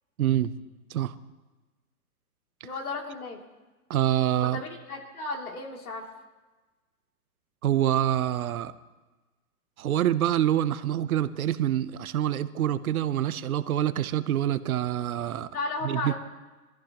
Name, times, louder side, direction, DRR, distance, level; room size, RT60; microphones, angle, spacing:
voice 1, 0.2-0.5 0.9-1.1 3.9-4.6 7.6-8.7 9.8-15.5 15.8-16.1, right 11 dB, 65° right, 13 dB, 0.9 m, -26 dB
voice 2, 2.6-3.4 4.4-6.1 15.5-16.2, left 3 dB, 70° left, 1 dB, 3.0 m, -34 dB
23.5 x 14.0 x 3.0 m, 1.2 s
hypercardioid pair, 150°, 46 cm